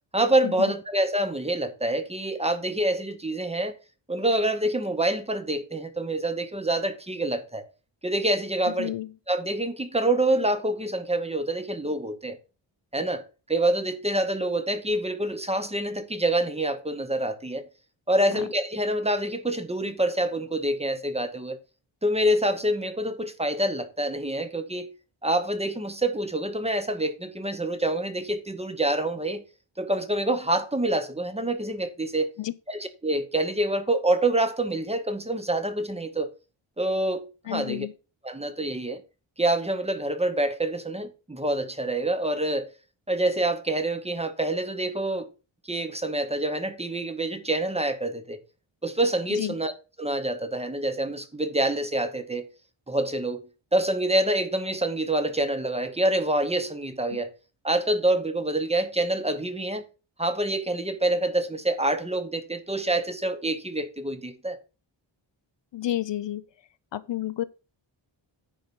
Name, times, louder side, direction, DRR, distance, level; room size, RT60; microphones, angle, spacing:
voice 1, 0.1-3.7 4.1-7.6 8.0-8.9 9.3-12.4 12.9-13.2 13.5-17.7 18.1-21.6 22.0-24.9 25.2-29.4 29.8-32.3 32.7-36.3 36.8-37.9 38.2-39.0 39.4-42.7 43.1-45.3 45.6-48.4 48.8-52.5 52.9-53.4 53.7-57.3 57.6-59.8 60.2-64.6, right 1 dB, 15° right, 0.9 m, -26 dB
voice 2, 8.8-9.1 32.4-32.5 37.5-37.9 49.3-49.5 57.1-57.2 65.7-66.4 66.9-67.4, left 13 dB, 65° left, 0.6 m, -30 dB
9.9 x 4.0 x 6.9 m
wide cardioid pair, 170°, 48 cm